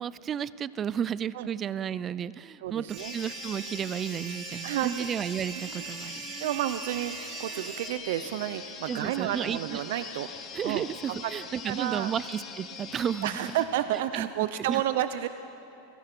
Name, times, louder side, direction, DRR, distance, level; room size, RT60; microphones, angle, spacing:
voice 1, 0.0-6.3 8.9-9.8 10.5-13.5 14.2-14.3 14.7-14.8, right 8 dB, 25° right, 19 dB, 0.4 m, -33 dB
voice 2, 2.6-3.1 4.6-5.1 5.5-10.3 10.6-10.8 11.2-11.3 11.6-12.1 13.2-15.3, right 12 dB, 70° right, 11 dB, 0.6 m, -31 dB
sound 1, 2.9-7.9, right 9 dB, 40° right, 1.7 m, -41 dB
sound 2, 3.0-13.6, left 6 dB, 30° left, 2.4 m, -42 dB
29.5 x 17.5 x 6.0 m, 2.9 s
supercardioid pair, 145°, 0 cm